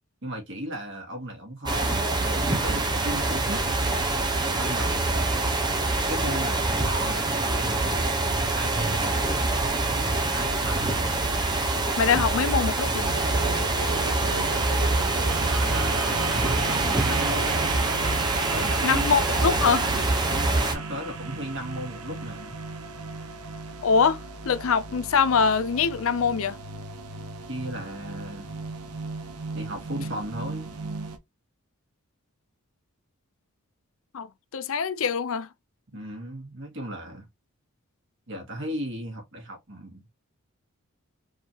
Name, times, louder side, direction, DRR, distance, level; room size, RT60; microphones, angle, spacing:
voice 1, 0.2-3.6 4.5-5.6 6.1-8.1 8.5-9.7 9.9-11.0 15.3-17.7 18.3-19.1 20.3-22.6 27.5-28.5 29.5-30.7 35.9-37.3 38.3-40.1, equal, 55° right, 2.2 m, -36 dB
sound 1, 1.7-20.7, right 2 dB, 20° right, 0.9 m, -25 dB
voice 2, 12.0-13.1 18.8-19.9 23.8-24.2 24.5-26.6 34.1-35.5, left 6 dB, 65° left, 0.5 m, -23 dB
sound 2, 13.0-31.2, right 4 dB, 90° right, 1.0 m, -35 dB
4.7 x 3.5 x 2.9 m
head